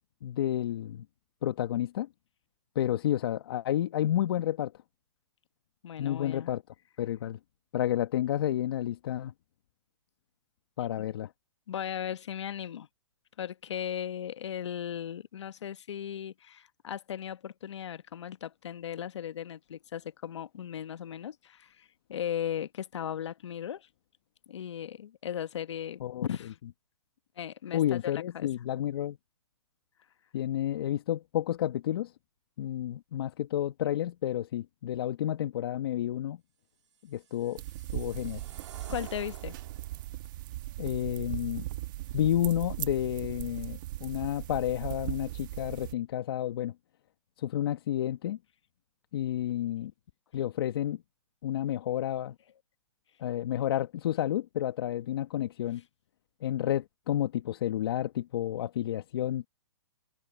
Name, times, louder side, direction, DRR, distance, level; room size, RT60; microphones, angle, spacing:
voice 1, 0.2-1.0 1.4-2.1 2.7-4.7 6.0-6.6 7.0-7.4 7.7-9.3 10.8-11.3 26.0-26.2 27.7-29.2 30.3-32.1 32.6-36.4 37.0-37.6 37.9-38.4 40.8-41.6 42.1-46.7 47.4-48.4 49.1-49.9 50.3-51.0 51.4-52.3 53.2-55.8 56.4-59.5, left 12 dB, 50° left, 1.4 m, -30 dB
voice 2, 5.8-6.5 11.0-11.1 11.7-12.9 13.4-23.9 24.5-26.6 27.4-28.5 38.9-39.6, left 9 dB, 65° left, 1.0 m, -37 dB
sound 1, 36.9-40.1, right 8 dB, 70° right, 3.1 m, -51 dB
sound 2, 37.6-45.9, right 16 dB, 40° right, 1.3 m, -38 dB
hypercardioid pair, 155°, 16 cm